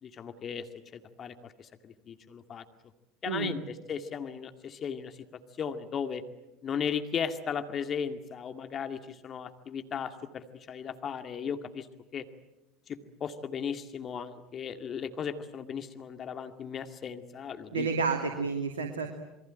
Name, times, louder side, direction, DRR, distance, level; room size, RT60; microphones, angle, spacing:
voice 1, 0.0-2.6 3.2-3.6 3.9-5.3 5.6-6.2 6.6-11.9 12.1-12.3 12.9-17.9, left 7 dB, 35° left, 8 dB, 2.2 m, -36 dB
voice 2, 17.7-19.1, right 4 dB, 80° right, 5 dB, 2.7 m, -30 dB
28.0 x 22.5 x 9.0 m, 0.91 s
figure-of-eight pair, 70°, 0 cm